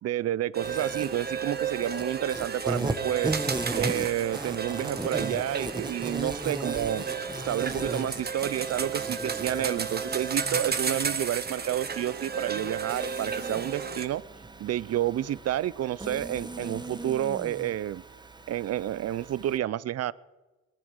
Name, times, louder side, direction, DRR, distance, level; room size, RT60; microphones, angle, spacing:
voice 1, 0.0-3.4 3.7-14.2 14.6-18.0 18.5-20.1, right 12 dB, 55° right, 21 dB, 0.6 m, -30 dB
sound 1, 0.5-14.1, right 5 dB, 35° right, 1.3 m, -33 dB
Insect, 0.6-19.6, right 2 dB, 15° right, 1.2 m, -37 dB
22.0 x 10.5 x 6.4 m, 1.2 s
cardioid pair, 90°, 30 cm